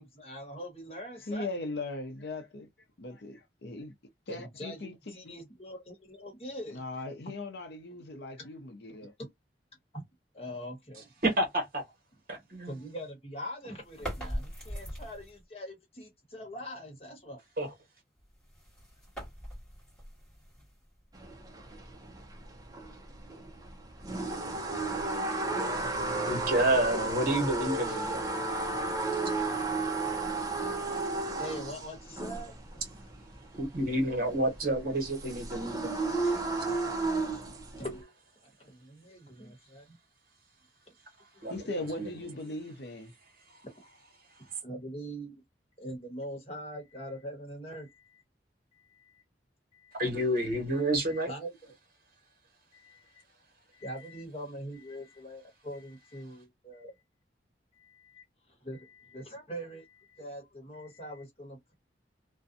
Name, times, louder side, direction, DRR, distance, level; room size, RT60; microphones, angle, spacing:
voice 1, 0.0-1.6 4.3-6.8 9.9-10.0 10.3-11.1 12.4-17.4 26.9-27.2 31.4-32.8 37.5-38.2 38.6-39.9 44.6-45.4 45.8-48.2 48.7-49.2 49.7-50.0 51.1-51.7 52.7-53.2 53.7-56.9 57.7-61.7, equal, 35° left, 1.1 m, -43 dB
voice 2, 1.2-2.7 3.0-3.9 4.3-5.3 6.7-9.1 41.5-43.1, left 2 dB, 65° left, 0.6 m, -39 dB
voice 3, 11.2-11.8 12.3-12.8 17.6-17.7 26.3-28.3 29.4-29.7 33.5-36.4 36.7-36.8 41.4-41.5 42.0-42.1 50.0-51.3, right 1 dB, 50° right, 1.2 m, -29 dB
sound 1, 13.8-15.4 18.2-21.1, equal, 5° left, 1.5 m, -41 dB
sound 2, 21.1-38.0, right 3 dB, 20° right, 0.5 m, -33 dB
2.6 x 2.2 x 2.5 m
head